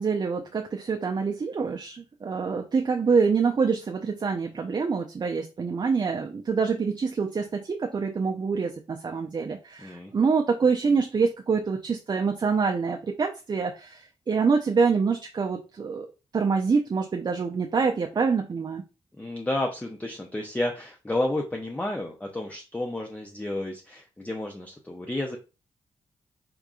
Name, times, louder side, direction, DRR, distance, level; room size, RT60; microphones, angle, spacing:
voice 1, 0.0-16.1 16.3-18.8, right 5 dB, 40° right, 0.5 m, -26 dB
voice 2, 9.8-10.1 19.2-25.4, left 1 dB, 15° left, 0.6 m, -31 dB
3.7 x 3.5 x 2.3 m
cardioid pair, 60°, 11 cm